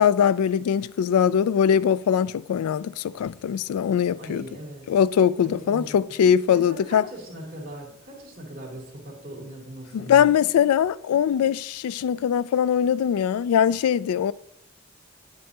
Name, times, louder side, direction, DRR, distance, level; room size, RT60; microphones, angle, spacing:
voice 1, 0.0-4.5 4.9-7.0 9.9-14.3, left 8 dB, 80° left, 0.3 m, -21 dB
voice 2, 4.2-4.9 5.4-6.0 6.4-10.5, right 1 dB, 40° right, 3.1 m, -39 dB
9.5 x 8.7 x 2.9 m
head